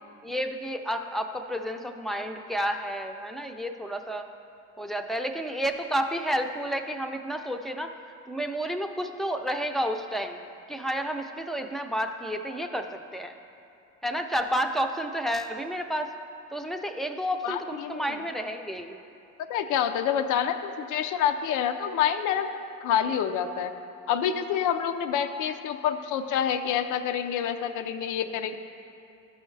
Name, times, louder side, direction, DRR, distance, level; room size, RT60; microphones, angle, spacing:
voice 1, 0.2-4.3 4.8-7.9 8.3-10.4 10.7-13.3 14.0-16.1 16.5-19.0 27.8-28.0, equal, ahead, 5 dB, 0.5 m, -31 dB
voice 2, 17.4-18.2 19.5-22.5 22.8-23.7 24.1-28.6, left 9 dB, 85° left, 8 dB, 0.5 m, -27 dB
13.0 x 5.6 x 3.2 m, 2.7 s
cardioid pair, 90°, 30 cm